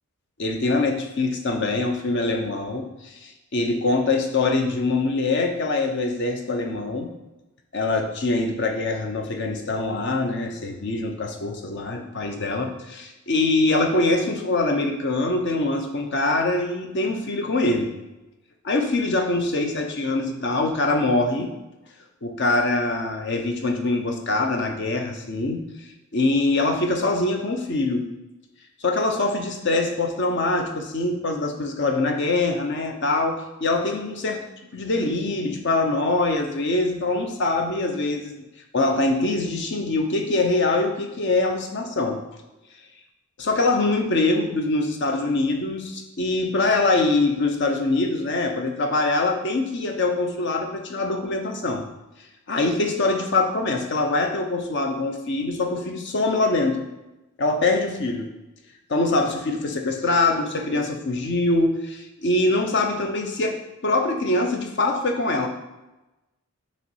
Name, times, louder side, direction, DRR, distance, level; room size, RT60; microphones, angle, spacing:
voice 1, 0.4-7.1 7.7-17.9 18.6-21.5 22.2-25.6 26.1-28.1 28.8-34.4 34.7-38.3 38.7-42.2 43.4-51.8 52.5-56.9 57.4-58.3 58.9-65.5, left 2 dB, 55° left, 4 dB, 0.8 m, -23 dB
6.9 x 3.1 x 4.7 m, 1.0 s
head